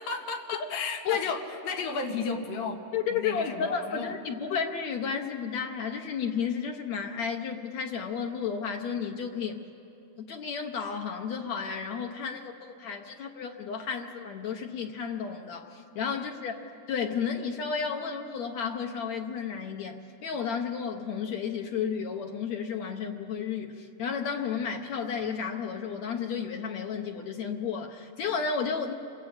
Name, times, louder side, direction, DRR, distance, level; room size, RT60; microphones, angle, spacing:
voice 1, 0.0-2.8 3.1-4.1 16.1-16.4, left 5 dB, 90° left, 2 dB, 3.7 m, -33 dB
voice 2, 2.9-9.6 10.2-12.5 12.8-16.6 16.9-28.9, left 6 dB, 65° left, 3 dB, 2.1 m, -32 dB
28.5 x 21.0 x 8.8 m, 2.7 s
omnidirectional pair, 3.9 m